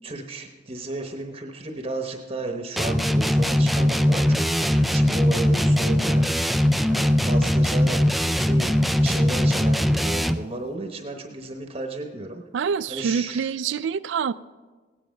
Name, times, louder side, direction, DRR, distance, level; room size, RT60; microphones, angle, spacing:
voice 1, 0.0-6.3 6.9-8.7 9.0-12.4 12.9-13.5, right 2 dB, 30° right, 3 dB, 0.9 m, -34 dB
sound 1, 2.8-10.5, left 1 dB, ahead, 0.3 m, -21 dB
voice 2, 12.5-14.3, right 6 dB, 85° right, 16 dB, 0.3 m, -26 dB
17.0 x 9.4 x 5.1 m, 1.3 s
head